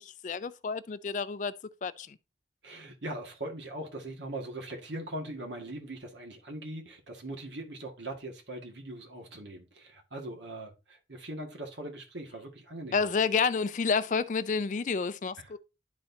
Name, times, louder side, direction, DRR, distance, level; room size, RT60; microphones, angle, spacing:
voice 1, 0.0-1.5 1.8-2.2 12.9-15.6, left 5 dB, 45° left, 0.4 m, -29 dB
voice 2, 2.6-13.0 15.4-15.5, right 1 dB, 90° right, 1.8 m, -41 dB
11.5 x 4.3 x 2.7 m
head